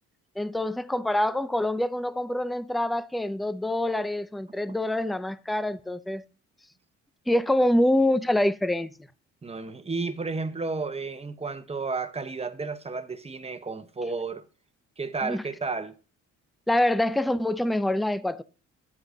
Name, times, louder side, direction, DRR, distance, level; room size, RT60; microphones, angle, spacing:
voice 1, 0.4-6.2 7.3-8.9 15.2-15.4 16.7-18.4, left 1 dB, ahead, 0.5 m, -25 dB
voice 2, 9.4-14.4 15.0-15.9, right 4 dB, 20° right, 1.0 m, -32 dB
11.0 x 7.9 x 2.7 m
cardioid pair, 90°, 30 cm